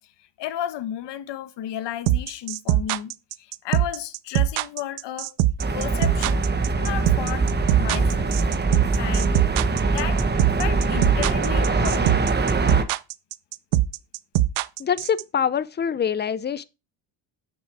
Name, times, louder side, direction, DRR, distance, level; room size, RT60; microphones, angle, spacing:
voice 1, 0.4-3.1 3.4-5.4 5.7-6.4 6.7-8.3 9.0-9.3 9.8-10.2 10.6-12.3, left 11 dB, 55° left, 1.3 m, -33 dB
sound 1, 2.1-15.2, right 15 dB, 90° right, 0.8 m, -21 dB
sound 2, 5.6-12.8, right 3 dB, 20° right, 1.1 m, -22 dB
voice 2, 14.8-16.6, left 8 dB, 20° left, 0.5 m, -24 dB
9.3 x 6.5 x 4.7 m
cardioid pair, 120°, 50 cm